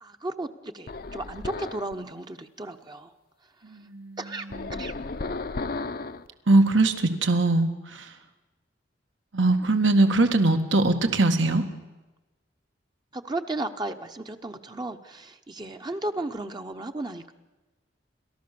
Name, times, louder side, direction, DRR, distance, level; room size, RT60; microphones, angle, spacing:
voice 1, 0.0-3.1 4.2-4.9 13.1-17.3, right 2 dB, 25° right, 6 dB, 0.8 m, -34 dB
sound 1, 0.9-1.9 4.5-6.3, left 3 dB, 50° left, 0.7 m, -34 dB
voice 2, 3.6-4.2 4.7-4.8 6.5-8.2 9.3-11.7, right 2 dB, 85° right, 6 dB, 1.9 m, -21 dB
30.0 x 13.5 x 6.9 m, 1.1 s
head